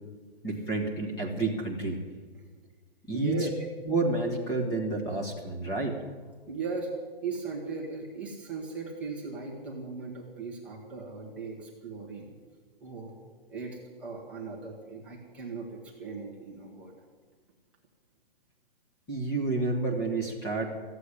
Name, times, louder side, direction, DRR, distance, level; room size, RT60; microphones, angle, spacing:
voice 1, 0.4-2.0 3.1-3.5 3.9-6.0 19.1-20.8, right 3 dB, 10° left, 0 dB, 1.6 m, -30 dB
voice 2, 3.1-3.5 6.5-6.9 7.2-12.3 12.8-13.1 13.5-17.0, right 4 dB, 5° right, -4 dB, 1.1 m, -38 dB
15.0 x 8.1 x 9.8 m, 1.4 s
hypercardioid pair, 175°, 29 cm